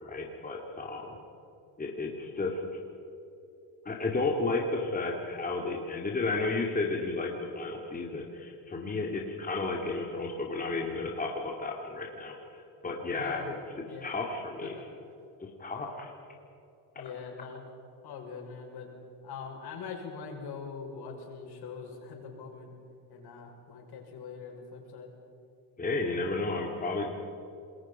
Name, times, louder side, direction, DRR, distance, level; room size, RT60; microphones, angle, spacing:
voice 1, 0.0-1.2 1.8-2.8 3.8-14.7 15.4-16.1 25.8-27.1, left 3 dB, 20° left, 0 dB, 2.4 m, -33 dB
voice 2, 13.1-13.5 13.9-14.1 14.6-14.8 17.0-17.6 18.0-18.9 19.2-22.7 23.1-25.1, left 5 dB, 55° left, 1 dB, 6.1 m, -43 dB
27.5 x 21.5 x 5.6 m, 2.8 s
cardioid pair, 130°, 47 cm